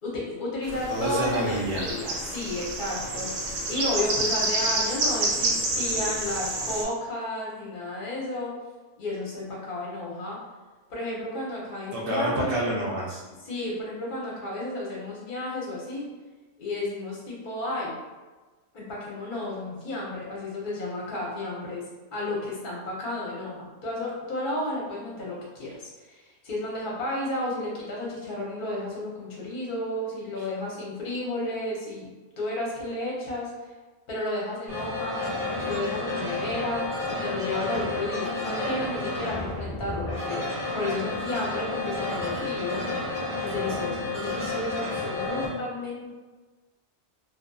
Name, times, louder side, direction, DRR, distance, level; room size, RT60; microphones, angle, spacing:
voice 1, 0.0-3.3 3.7-8.5 9.0-10.4 10.9-12.7 13.4-16.1 16.6-17.9 18.7-21.8 22.1-32.1 32.4-33.5 34.1-35.2 35.6-40.4 40.7-42.8 43.4-46.1, left 1 dB, 50° left, -4 dB, 0.8 m, -32 dB
sound 1, 0.6-6.8, right 2 dB, 85° right, 1.0 m, -29 dB
voice 2, 0.9-1.8 11.9-13.2, right 1 dB, 60° right, -2 dB, 0.6 m, -27 dB
sound 2, 34.7-45.5, left 2 dB, 5° right, 1.0 m, -31 dB
2.5 x 2.4 x 2.2 m, 1.3 s
omnidirectional pair, 1.3 m